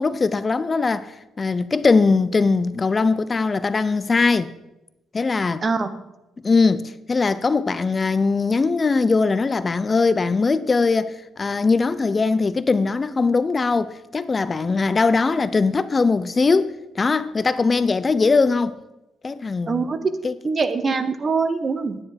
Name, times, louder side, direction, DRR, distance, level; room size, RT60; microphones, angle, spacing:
voice 1, 0.0-4.5 5.1-5.6 6.4-6.8 7.1-18.7 19.2-19.9 20.2-20.3, left 4 dB, 30° left, 0.4 m, -20 dB
voice 2, 19.7-20.0 20.4-22.0, right 4 dB, 35° right, 0.9 m, -23 dB
9.7 x 9.6 x 5.0 m
cardioid pair, 90°, 0 cm